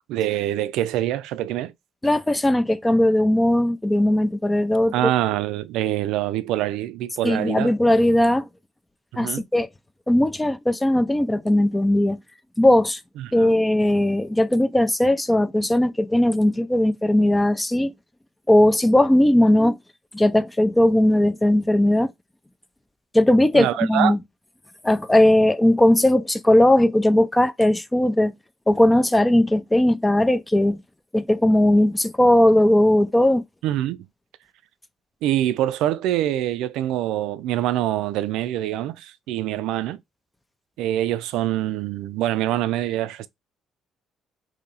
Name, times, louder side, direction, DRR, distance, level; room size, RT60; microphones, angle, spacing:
voice 1, 0.1-1.7 4.9-7.7 9.1-9.4 13.2-13.5 23.5-24.1 33.6-34.1 35.2-40.0 40.8-43.3, right 13 dB, 80° right, 0.4 m, -25 dB
voice 2, 2.0-5.1 7.2-8.5 9.2-9.7 10.1-12.2 12.6-13.0 13.3-17.9 18.5-19.8 20.1-22.1 23.1-24.2 24.8-28.3 28.7-30.8 31.1-33.4, left 1 dB, 15° left, 0.5 m, -18 dB
2.7 x 2.7 x 3.9 m
supercardioid pair, 65°, 0 cm